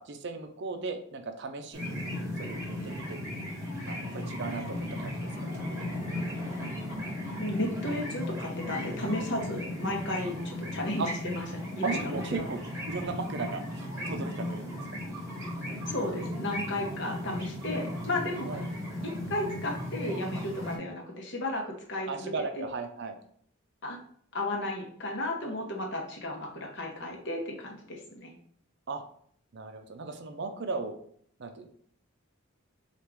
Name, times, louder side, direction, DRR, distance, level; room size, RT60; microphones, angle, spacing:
voice 1, 0.0-1.9 2.4-3.2 3.9-5.3 11.0-11.1 11.8-14.9 18.4-18.6 22.1-23.2 28.9-29.0 29.5-31.0 31.4-31.7, right 4 dB, 50° right, 7 dB, 0.5 m, -36 dB
sound 1, 1.7-20.8, left 1 dB, 10° right, 1.1 m, -36 dB
voice 2, 7.4-12.5 15.9-18.5 19.0-22.6 23.8-24.0 24.3-28.3, left 1 dB, 55° left, 0 dB, 0.9 m, -34 dB
4.6 x 2.5 x 3.3 m, 0.62 s
head